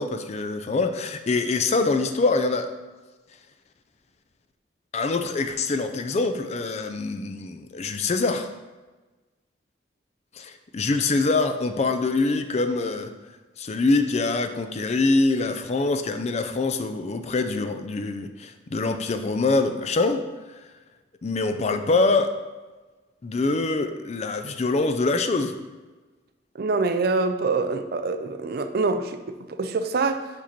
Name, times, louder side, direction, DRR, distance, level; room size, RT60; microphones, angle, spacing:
voice 1, 0.0-2.7 4.9-8.5 10.4-13.1 13.6-20.2 20.5-20.6 21.2-22.4 23.2-25.6, left 3 dB, 35° left, 8 dB, 0.4 m, -24 dB
voice 2, 26.6-30.3, right 3 dB, 55° right, 8 dB, 0.4 m, -25 dB
5.3 x 4.9 x 4.4 m, 1.2 s
head